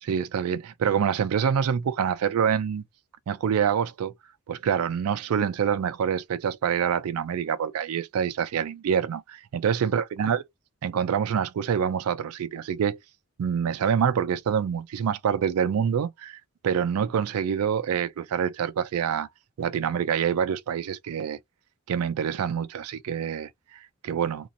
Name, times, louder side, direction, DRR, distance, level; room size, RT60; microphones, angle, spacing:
voice 1, 0.0-2.8 3.3-4.1 4.5-10.4 10.8-13.0 13.4-19.3 19.6-21.4 21.9-24.5, right 7 dB, 80° right, 0.3 m, -26 dB
3.0 x 2.8 x 2.5 m
head